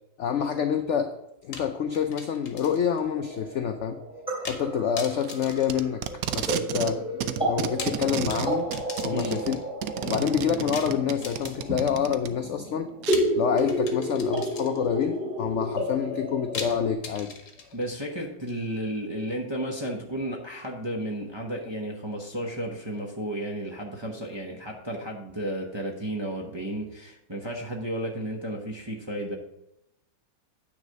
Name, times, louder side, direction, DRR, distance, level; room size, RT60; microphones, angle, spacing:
voice 1, 0.2-1.1 1.4-4.0 4.5-6.0 6.3-7.0 7.4-8.7 9.0-9.6 10.1-12.9 13.3-17.3, left 8 dB, 80° left, 7 dB, 0.6 m, -27 dB
sound 1, 1.5-3.0 3.3-3.4 4.4-4.7 5.0-6.5 7.5-9.7 10.7-11.9 13.1-15.0 16.5-17.9, left 5 dB, 50° left, 1.4 m, -40 dB
sound 2, 3.1-16.9, equal, 5° right, 2.4 m, -32 dB
Packing tape duct tape, 5.2-6.9 7.2-12.3 13.0-13.2, right 10 dB, 70° right, 0.9 m, -32 dB
voice 2, 9.1-9.4 17.7-29.4, right 1 dB, 25° right, -1 dB, 0.7 m, -33 dB
9.4 x 4.1 x 6.4 m, 0.85 s
omnidirectional pair, 1.9 m